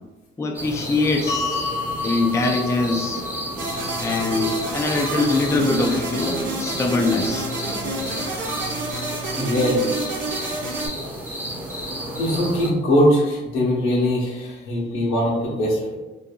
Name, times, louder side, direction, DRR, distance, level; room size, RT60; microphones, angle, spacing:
voice 1, 0.4-1.6 2.0-3.3 4.0-7.5, left 3 dB, 15° left, 1 dB, 0.3 m, -23 dB
sound 1, 0.5-12.7, equal, 10° right, 0.7 m, -32 dB
sound 2, 1.3-7.5, left 3 dB, 65° left, 0.9 m, -33 dB
sound 3, 3.6-10.9, right 1 dB, 70° right, 0.8 m, -29 dB
voice 2, 9.3-9.9 12.2-16.0, equal, 90° left, -4 dB, 0.9 m, -21 dB
2.6 x 2.6 x 2.2 m, 1.1 s
cardioid pair, 90°, 20 cm